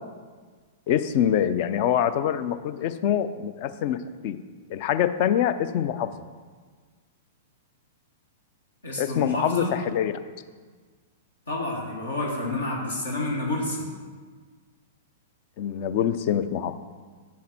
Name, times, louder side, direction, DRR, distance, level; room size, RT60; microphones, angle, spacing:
voice 1, 0.9-4.0 4.2-4.4 4.7-6.1 9.0-10.1 15.6-16.7, left 10 dB, 45° left, 12 dB, 0.4 m, -25 dB
voice 2, 8.8-9.7 11.5-13.9, left 2 dB, 75° left, -2 dB, 1.6 m, -29 dB
7.3 x 7.3 x 4.3 m, 1.5 s
figure-of-eight pair, 105°, 0 cm